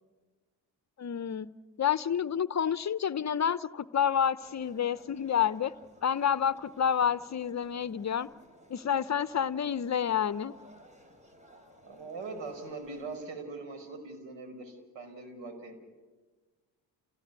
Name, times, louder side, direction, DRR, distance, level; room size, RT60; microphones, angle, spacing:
voice 1, 1.0-1.5 1.8-5.7 6.0-8.3 8.7-10.5, left 8 dB, 35° left, 16 dB, 0.7 m, -29 dB
sound 1, 4.4-13.2, equal, 15° right, 5.6 m, -57 dB
voice 2, 11.8-15.8, right 3 dB, 75° right, 7 dB, 5.6 m, -41 dB
29.0 x 18.0 x 9.6 m, 1.4 s
supercardioid pair, 70°, 45 cm